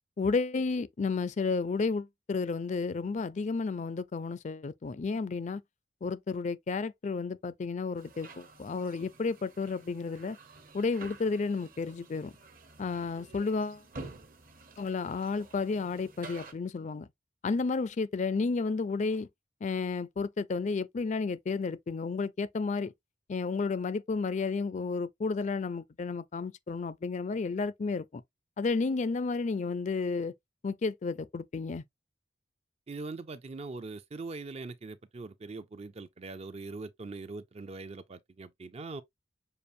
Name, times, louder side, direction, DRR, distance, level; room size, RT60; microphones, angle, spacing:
voice 1, 0.2-5.6 6.0-10.4 10.7-12.3 12.8-13.8 14.8-17.1 17.4-19.3 19.6-22.9 23.3-28.2 28.6-30.3 30.6-31.8, left 4 dB, 40° left, 0.4 m, -32 dB
sound 1, 8.0-16.5, right 3 dB, 50° right, 1.1 m, -50 dB
voice 2, 32.9-39.0, right 3 dB, 35° right, 0.4 m, -42 dB
6.7 x 2.5 x 2.6 m
head